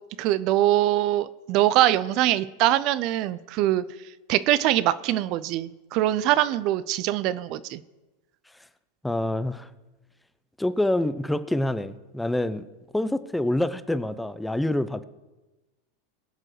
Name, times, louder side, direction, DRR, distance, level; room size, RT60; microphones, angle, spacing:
voice 1, 0.2-3.8 4.3-7.8, right 14 dB, 50° right, 16 dB, 0.5 m, -23 dB
voice 2, 9.0-9.7 10.6-12.6 12.9-15.0, left 1 dB, 5° left, 13 dB, 0.6 m, -26 dB
22.5 x 7.5 x 3.2 m, 1.1 s
hypercardioid pair, 90°, 0 cm